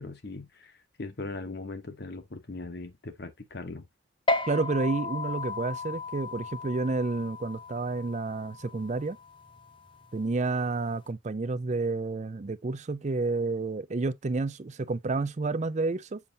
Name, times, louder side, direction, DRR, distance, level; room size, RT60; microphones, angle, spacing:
voice 1, 0.0-3.9, left 3 dB, 50° left, 1.0 m, -40 dB
sound 1, 4.3-11.1, left 3 dB, 25° left, 0.6 m, -35 dB
voice 2, 4.5-9.2 10.1-16.2, right 3 dB, 35° right, 0.4 m, -30 dB
7.3 x 5.3 x 2.7 m
head